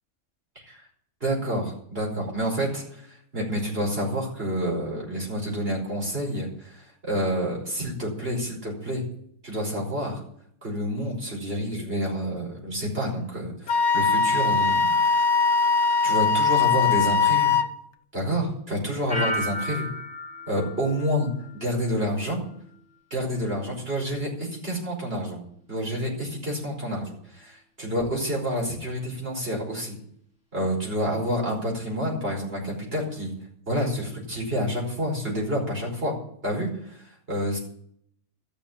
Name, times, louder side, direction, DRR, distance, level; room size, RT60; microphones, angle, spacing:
voice 1, 1.2-9.0 9.4-10.2 10.6-15.2 16.0-17.6 18.1-19.9 20.5-21.3 21.6-22.4 23.1-25.4 25.7-30.0 30.5-33.3 33.7-36.1 36.4-37.0 37.3-37.6, equal, 40° right, -2 dB, 5.3 m, -28 dB
Wind instrument woodwind instrument, 13.7-17.7, left 5 dB, 60° left, 0.9 m, -21 dB
sound 1, 19.1-21.9 22.3-22.7, equal, 5° right, 3.1 m, -34 dB
13.0 x 7.2 x 8.7 m, 0.67 s
omnidirectional pair, 1.6 m